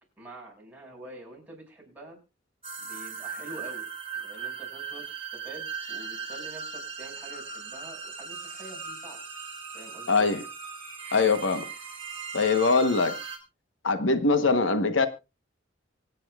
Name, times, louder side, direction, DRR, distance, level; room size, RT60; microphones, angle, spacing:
voice 1, 0.2-2.2 2.8-3.9 4.2-9.2 9.7-10.3, right 2 dB, 10° right, 5.4 m, -46 dB
sound 1, 2.6-13.4, right 5 dB, 30° right, 2.9 m, -38 dB
voice 2, 10.1-10.4 11.1-11.7 12.3-13.2 13.8-15.1, left 4 dB, 85° left, 1.1 m, -22 dB
25.0 x 8.6 x 2.4 m
head